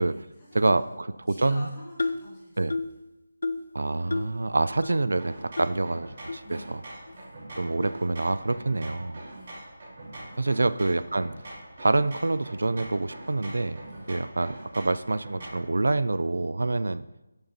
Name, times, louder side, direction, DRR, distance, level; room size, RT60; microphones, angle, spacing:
voice 1, 0.0-2.6 6.4-6.7 7.1-7.4 9.3-9.6 10.3-10.7 13.8-14.1, equal, 15° left, -6 dB, 1.8 m, -48 dB
voice 2, 1.3-1.7 2.6-2.8 3.7-6.4 7.6-9.2 10.4-11.3 11.8-13.8 14.1-17.0, right 2 dB, 70° right, 15 dB, 0.3 m, -26 dB
sound 1, 2.0-2.3 2.7-3.0 3.4-3.7 4.1-4.4 4.8-4.9 5.6-5.7 6.3-6.4 7.1-7.2 7.8-8.0, left 3 dB, 60° left, 0.6 m, -30 dB
sound 2, 5.2-15.7, right 1 dB, 30° right, 3.6 m, -43 dB
13.5 x 6.6 x 2.8 m, 0.99 s
figure-of-eight pair, 180°, 0 cm